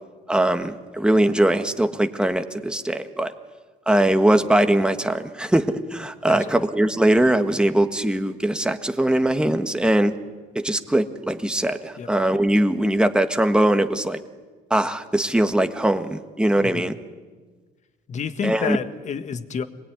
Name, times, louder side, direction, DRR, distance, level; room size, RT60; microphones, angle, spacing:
voice 1, 0.3-3.3 3.9-10.1 10.5-14.2 14.7-16.9 18.4-18.8, right 1 dB, 5° right, 7 dB, 1.5 m, -21 dB
voice 2, 16.6-16.9 18.1-19.6, left 6 dB, 45° left, 9 dB, 1.6 m, -29 dB
25.5 x 21.0 x 9.7 m, 1.4 s
cardioid pair, 110°, 17 cm